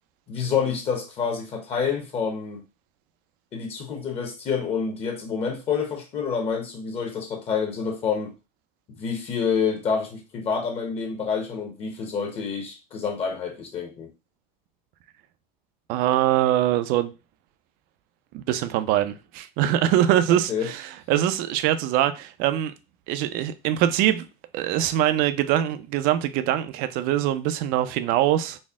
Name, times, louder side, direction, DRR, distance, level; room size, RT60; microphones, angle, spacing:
voice 1, 0.3-2.6 3.5-8.3 8.9-14.1 20.5-20.7, left 6 dB, 30° left, 0.8 m, -28 dB
voice 2, 15.9-17.1 18.3-22.7 23.1-24.3 24.5-28.6, right 12 dB, 50° right, 0.4 m, -23 dB
4.1 x 2.0 x 3.5 m
supercardioid pair, 150°, 19 cm